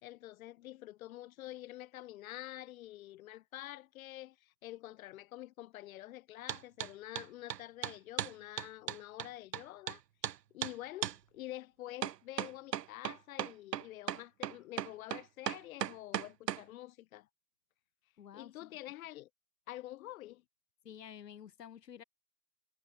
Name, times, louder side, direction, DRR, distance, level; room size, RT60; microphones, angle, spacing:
voice 1, 0.0-10.0 10.5-17.3 18.3-19.3 19.7-20.4, left 15 dB, 60° left, 2.8 m, -47 dB
sound 1, 6.5-6.9 7.2-10.0 10.2-10.4 10.6-10.7 11.0-11.2 12.0-16.6, right 11 dB, 80° right, 1.6 m, -36 dB
voice 2, 18.2-18.7 20.8-22.0, left 9 dB, 80° left, 4.9 m, -51 dB
hypercardioid pair, 130°, 48 cm